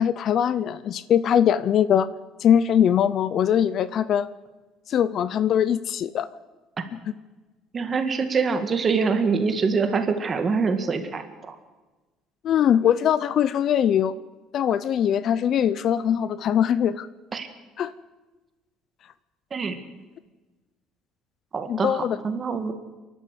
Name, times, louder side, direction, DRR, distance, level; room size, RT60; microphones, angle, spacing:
voice 1, 0.0-2.1 2.4-4.3 4.9-6.3 12.4-14.1 14.5-17.1 17.8-17.9 21.7-22.2, left 9 dB, 45° left, 17 dB, 0.6 m, -21 dB
voice 2, 7.7-11.6 17.3-17.5 19.5-19.8 21.5-22.7, right 5 dB, 25° right, 7 dB, 1.8 m, -25 dB
28.5 x 12.0 x 8.3 m, 1.2 s
cardioid pair, 160°, 0 cm